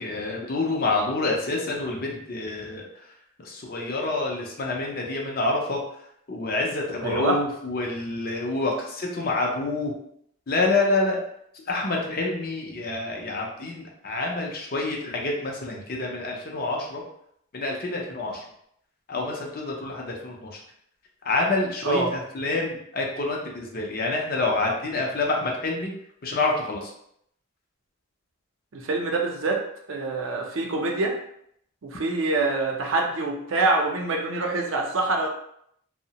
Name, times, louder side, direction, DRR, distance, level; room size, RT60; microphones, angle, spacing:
voice 1, 0.0-2.9 3.5-5.8 6.3-9.9 10.5-11.2 11.7-17.0 17.5-18.4 19.1-20.5 21.3-25.9 26.2-26.9, left 2 dB, 45° left, 0 dB, 0.5 m, -27 dB
voice 2, 7.0-7.4 21.8-22.1 28.7-29.6 29.9-31.1 31.8-35.3, right 3 dB, 70° right, 1 dB, 0.5 m, -25 dB
2.7 x 2.0 x 2.8 m, 0.71 s
head